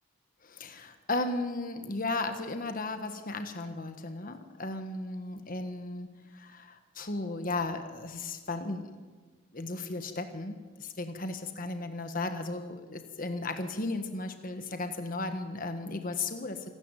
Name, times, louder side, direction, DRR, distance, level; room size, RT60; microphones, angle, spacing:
voice 1, 0.4-9.0 9.5-16.7, left 2 dB, 40° left, 8 dB, 1.3 m, -35 dB
27.0 x 13.0 x 9.1 m, 1.4 s
head